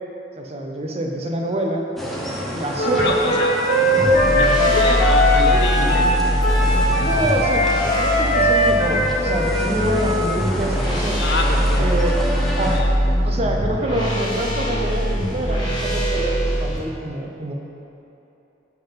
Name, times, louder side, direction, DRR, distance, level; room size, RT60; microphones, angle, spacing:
voice 1, 0.4-1.8 2.5-3.3 4.9-5.0 7.0-11.2 11.8-12.2 12.6-12.8 13.2-17.5, right 1 dB, 35° right, 1 dB, 0.8 m, -26 dB
sound 1, 2.0-12.8, equal, ahead, 0.9 m, -30 dB
voice 2, 2.8-3.5 4.3-6.1 11.2-11.9 12.6-12.9, left 3 dB, 65° left, 2 dB, 0.8 m, -26 dB
Wind instrument woodwind instrument, 2.8-10.3, left 1 dB, 45° left, 1.3 m, -20 dB
sound 2, 4.0-16.8, equal, 25° left, 1.4 m, -22 dB
7.5 x 5.7 x 5.2 m, 3.0 s
head